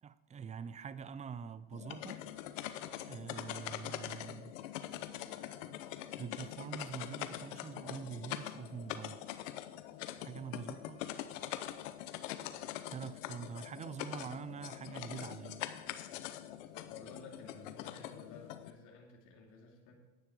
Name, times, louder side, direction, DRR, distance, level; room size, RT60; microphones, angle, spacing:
voice 1, 0.0-2.7 3.1-4.5 5.5-5.6 6.2-9.3 10.2-11.0 12.9-15.7, right 7 dB, 20° right, 0.5 m, -45 dB
sound 1, 1.7-18.7, left 12 dB, 85° left, 0.9 m, -43 dB
voice 2, 16.9-19.9, left 4 dB, 50° left, 2.7 m, -53 dB
10.5 x 9.0 x 4.8 m
supercardioid pair, 110°, 37 cm